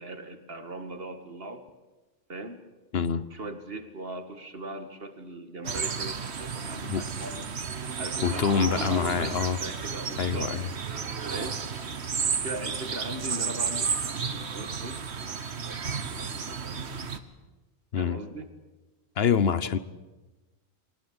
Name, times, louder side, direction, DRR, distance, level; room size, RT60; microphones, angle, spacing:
voice 1, 0.0-1.7 2.3-2.6 3.1-7.5 8.0-9.3 9.6-10.5 11.3-11.7 12.2-16.9 18.0-18.5 19.6-19.7, right 2 dB, 65° right, 7 dB, 2.3 m, -40 dB
voice 2, 2.9-3.3 6.9-7.0 8.2-9.6 10.2-10.7 17.9-18.2 19.2-19.8, left 7 dB, 70° left, 16 dB, 1.2 m, -25 dB
sound 1, 5.6-17.2, right 6 dB, 90° right, 1.6 m, -32 dB
23.0 x 19.5 x 8.9 m, 1.2 s
omnidirectional pair, 1.1 m